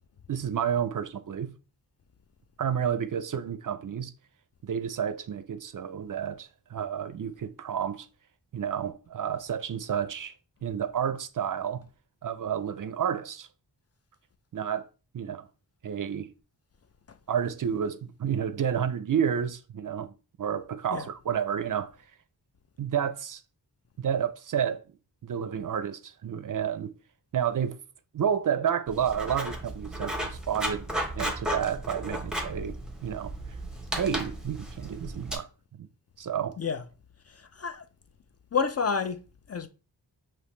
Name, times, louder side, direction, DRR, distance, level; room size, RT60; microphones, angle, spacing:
voice 1, 0.3-1.5 2.6-4.1 4.6-8.1 8.5-10.3 10.6-11.8 12.2-13.5 14.5-14.9 15.1-15.5 15.8-16.3 17.3-20.1 20.4-21.9 22.8-23.4 24.0-24.8 25.2-26.9 27.3-27.8 28.1-30.9 31.1-33.3 34.0-35.5 35.8-35.9 36.2-36.6, right 8 dB, 50° right, 0.5 m, -30 dB
Writing, 28.9-35.4, right 1 dB, ahead, 0.9 m, -34 dB
voice 2, 37.3-37.9 38.5-39.7, left 5 dB, 40° left, 0.4 m, -30 dB
4.9 x 2.9 x 3.1 m
cardioid pair, 60°, 42 cm